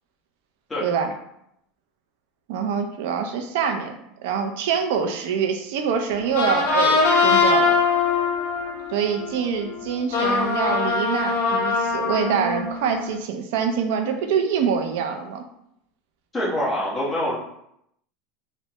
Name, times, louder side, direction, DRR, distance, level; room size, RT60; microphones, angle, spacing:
voice 1, 0.8-1.1 2.5-3.9 4.2-7.8 8.9-15.4, right 6 dB, 70° right, 5 dB, 0.4 m, -25 dB
sound 1, 6.1-13.1, left 4 dB, 85° left, 0.7 m, -22 dB
voice 2, 16.3-17.4, left 1 dB, 10° left, -8 dB, 1.0 m, -25 dB
3.2 x 2.1 x 2.8 m, 0.75 s
supercardioid pair, 160°, 0 cm